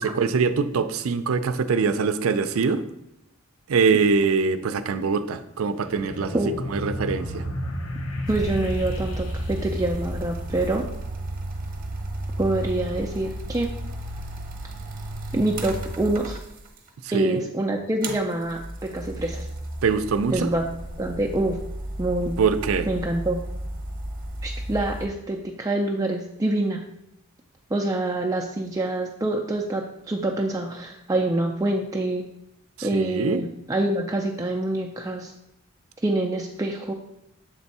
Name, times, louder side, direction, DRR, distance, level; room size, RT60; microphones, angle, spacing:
voice 1, 0.0-2.8 3.7-6.4 6.7-7.5 17.1-17.4 19.8-20.5 22.4-22.9 32.8-33.4, right 5 dB, 85° right, 11 dB, 0.4 m, -23 dB
sound 1, 5.8-10.7, equal, 70° left, 0.8 m, -33 dB
voice 2, 8.3-10.9 12.4-13.7 15.3-16.4 17.1-19.5 20.3-20.6 21.0-21.6 22.0-22.3 22.9-23.4 24.4-26.8 27.7-32.3 32.8-35.3 36.0-36.9, right 2 dB, 15° right, 2 dB, 0.3 m, -26 dB
sound 2, 8.3-16.9 18.0-25.1, right 1 dB, 40° right, 0.8 m, -33 dB
7.3 x 3.4 x 4.1 m, 0.83 s
head